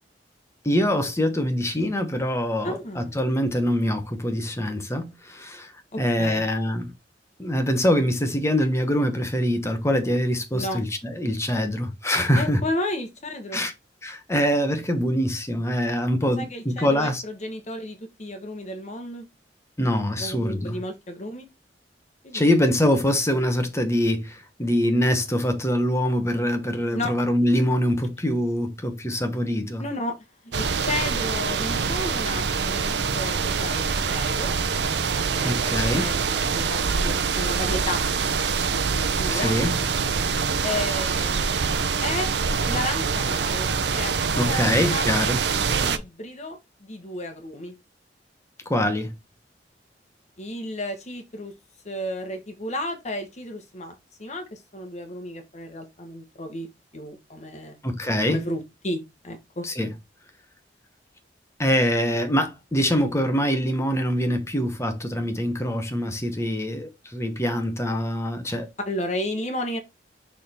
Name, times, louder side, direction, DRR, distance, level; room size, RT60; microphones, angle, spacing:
voice 1, 0.6-5.7 6.0-6.9 7.4-12.6 13.5-13.7 14.0-17.2 19.8-20.8 22.3-29.9 35.4-36.1 39.3-39.7 44.4-45.4 48.7-49.1 57.8-58.5 59.6-59.9 61.6-68.7, equal, 15° left, 1.1 m, -24 dB
voice 2, 2.6-3.2 5.9-6.4 10.5-10.8 12.4-13.6 16.2-19.2 20.2-21.5 22.2-22.4 26.9-27.1 29.8-30.2 30.4-34.6 35.3-35.6 36.0-38.0 38.9-39.6 40.6-42.3 42.6-45.0 45.7-47.7 50.4-51.5 51.8-56.7 56.9-57.8 58.3-59.6 68.9-69.8, left 1 dB, 40° left, 1.3 m, -33 dB
sound 1, 30.5-46.0, right 5 dB, 70° right, 0.6 m, -25 dB
6.5 x 3.6 x 4.3 m
head